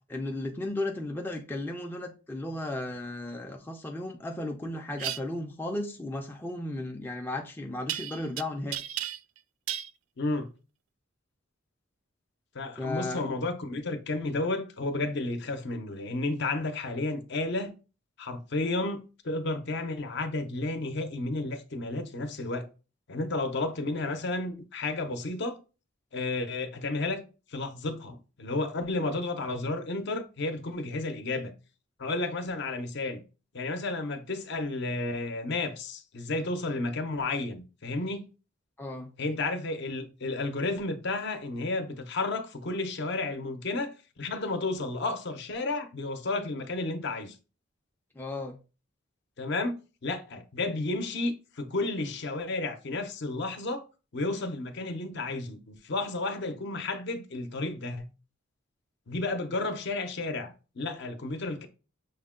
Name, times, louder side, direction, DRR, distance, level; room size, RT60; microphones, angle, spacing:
voice 1, 0.1-8.8 12.8-13.2 38.8-39.1 48.2-48.6, left 1 dB, 10° left, 0.4 m, -35 dB
sound 1, 5.0-5.2 7.9-8.4 8.7-9.4 9.7-9.9, right 12 dB, 80° right, 0.3 m, -33 dB
voice 2, 10.2-10.5 12.5-17.7 18.2-22.7 23.1-25.6 26.1-27.2 27.5-31.5 32.0-33.2 33.5-38.3 39.2-43.9 44.2-47.4 49.4-49.7 50.0-53.8 54.1-58.1 59.1-61.7, left 2 dB, 55° left, 0.6 m, -32 dB
6.4 x 2.1 x 3.6 m
head